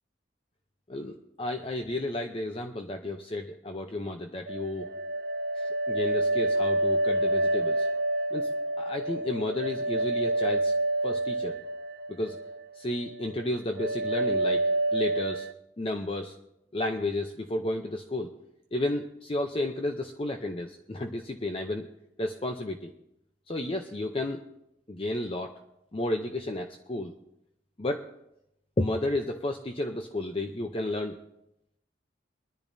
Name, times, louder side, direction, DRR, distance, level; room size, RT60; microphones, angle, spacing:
voice 1, 0.9-4.9 5.6-7.9 8.3-8.5 8.8-10.7 11.0-11.6 12.1-12.4 12.8-14.6 14.9-15.5 15.8-16.4 16.7-18.3 18.7-21.9 22.2-22.9 23.5-24.4 24.9-25.5 25.9-27.1 27.8-28.1 28.8-31.2, left 1 dB, 30° left, 4 dB, 0.6 m, -32 dB
sound 1, 4.5-12.6 12.9-13.5 13.8-15.5, right 2 dB, 55° right, 0.5 m, -28 dB
23.0 x 10.5 x 2.7 m, 0.81 s
head